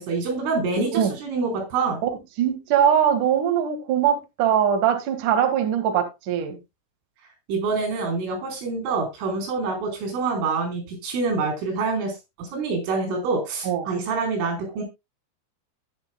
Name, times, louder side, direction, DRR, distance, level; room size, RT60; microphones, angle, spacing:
voice 1, 0.0-2.0 7.5-14.8, right 4 dB, 85° right, 4 dB, 6.9 m, -26 dB
voice 2, 2.4-6.6 13.6-13.9, right 9 dB, 55° right, 5 dB, 2.8 m, -21 dB
20.0 x 6.8 x 2.3 m, 0.23 s
omnidirectional pair, 5.5 m